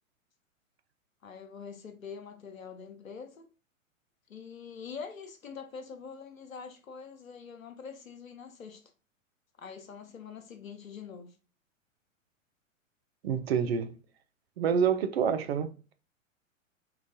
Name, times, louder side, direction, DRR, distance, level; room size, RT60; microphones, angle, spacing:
voice 1, 1.2-3.5 4.3-8.9 9.6-11.4, left 6 dB, 80° left, 0.8 m, -44 dB
voice 2, 13.2-14.0 14.6-15.7, right 7 dB, 50° right, 0.5 m, -27 dB
3.8 x 2.4 x 2.7 m
figure-of-eight pair, 105°, 40 cm